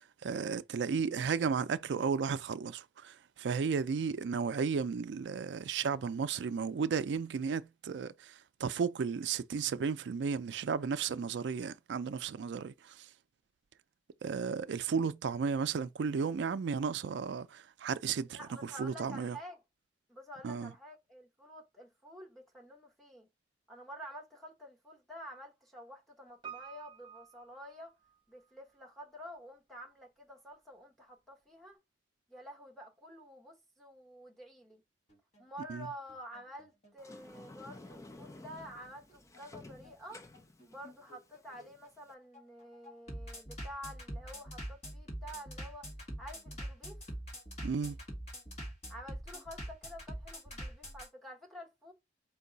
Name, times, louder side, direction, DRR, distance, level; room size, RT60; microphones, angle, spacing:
voice 1, 0.0-13.1 14.2-19.4 20.4-20.7 35.7-35.9 47.6-48.0, right 6 dB, 70° right, 0.4 m, -34 dB
voice 2, 18.2-19.6 20.1-23.3 23.7-27.9 28.3-31.8 32.3-34.8 35.4-40.2 40.6-45.9 46.2-47.0 48.9-51.9, equal, ahead, 1.0 m, -49 dB
Piano, 26.4-28.5 28.7-28.8, right 8 dB, 25° right, 0.9 m, -50 dB
Bass drum, 35.1-51.1, equal, 40° left, 1.6 m, -44 dB
Sliding door, 37.0-42.1, left 2 dB, 20° left, 0.4 m, -53 dB
4.5 x 2.3 x 3.9 m
head